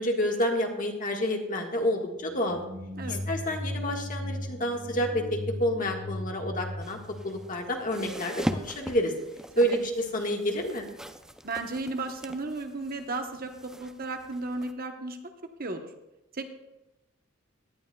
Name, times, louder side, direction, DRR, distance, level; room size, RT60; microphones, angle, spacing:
voice 1, 0.0-2.6 3.1-7.0 7.2-9.1 9.6-10.9, equal, 45° left, 2 dB, 1.5 m, -29 dB
sound 1, 2.1-8.1, equal, 65° right, 2.6 m, -37 dB
sound 2, 6.8-14.7, equal, 5° right, 0.5 m, -40 dB
voice 2, 11.4-15.2 15.6-15.8 16.3-16.5, right 2 dB, 45° right, 5 dB, 1.0 m, -34 dB
17.5 x 11.0 x 2.3 m, 0.95 s
head